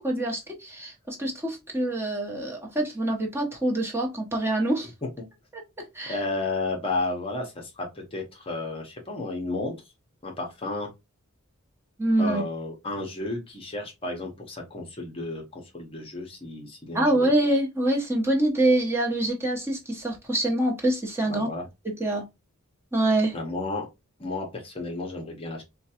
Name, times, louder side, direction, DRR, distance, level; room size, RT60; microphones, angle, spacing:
voice 1, 0.0-4.9 5.5-6.2 12.0-12.4 16.9-21.5 21.8-22.2 22.9-23.4, right 1 dB, 10° right, 1.0 m, -25 dB
voice 2, 6.1-9.8 10.2-10.9 12.2-17.3 21.3-21.6 23.3-23.9 24.2-25.6, left 2 dB, 25° left, 0.8 m, -32 dB
4.5 x 2.2 x 2.8 m
head